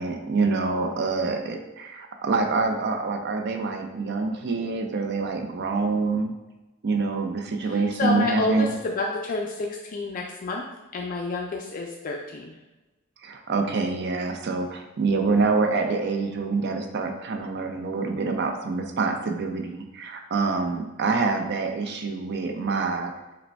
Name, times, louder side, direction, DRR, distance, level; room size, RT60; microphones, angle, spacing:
voice 1, 0.0-6.3 6.8-8.7 13.2-23.1, right 4 dB, 55° right, 5 dB, 0.5 m, -26 dB
voice 2, 7.6-10.6 10.9-12.5, left 3 dB, 40° left, 0 dB, 0.4 m, -29 dB
4.9 x 2.2 x 3.3 m, 1.1 s
head